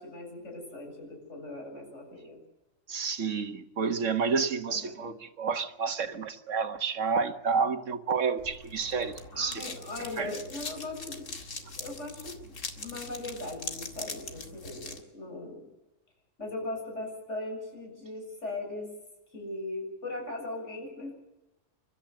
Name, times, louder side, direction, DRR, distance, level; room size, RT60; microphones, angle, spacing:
voice 1, 0.0-2.4 4.7-4.9 9.3-11.5 11.8-12.3 12.7-15.6 16.4-18.9 19.3-21.1, left 2 dB, 70° left, 7.6 m, -39 dB
voice 2, 2.9-9.7 10.0-10.3, right 5 dB, 80° right, 1.7 m, -30 dB
sound 1, 8.4-15.0, left 3 dB, 85° left, 2.5 m, -42 dB
30.0 x 13.0 x 7.8 m
omnidirectional pair, 1.3 m